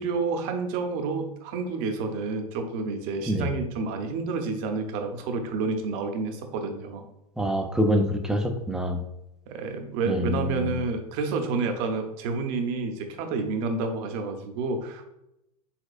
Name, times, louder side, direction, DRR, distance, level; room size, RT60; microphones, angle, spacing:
voice 1, 0.0-7.1 9.5-15.0, right 4 dB, 40° right, 6 dB, 0.7 m, -29 dB
voice 2, 7.4-9.0 10.1-10.7, equal, 5° right, 5 dB, 0.4 m, -25 dB
4.2 x 4.2 x 2.4 m, 0.85 s
figure-of-eight pair, 95°, 20 cm